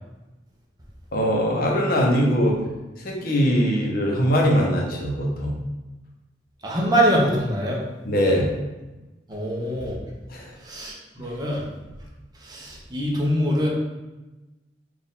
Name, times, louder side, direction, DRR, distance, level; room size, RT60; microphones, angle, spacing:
voice 1, 1.1-2.6 3.0-5.6 8.0-8.5 10.3-10.5, equal, 55° left, -1 dB, 0.8 m, -21 dB
voice 2, 6.6-7.8 9.3-10.0 10.6-11.6 12.4-13.7, equal, 25° right, -3 dB, 0.8 m, -23 dB
4.3 x 2.4 x 3.7 m, 1.1 s
head